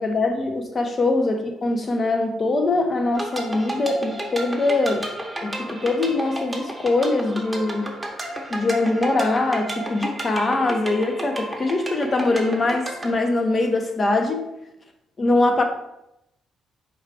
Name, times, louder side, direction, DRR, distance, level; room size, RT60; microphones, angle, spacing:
voice 1, 0.0-5.1 5.4-7.9 8.5-14.4 15.2-15.6, left 2 dB, 35° left, 4 dB, 0.8 m, -22 dB
sound 1, 3.1-13.1, right 1 dB, 10° right, 0.9 m, -32 dB
4.7 x 2.4 x 4.7 m, 0.84 s
cardioid pair, 90°, 0 cm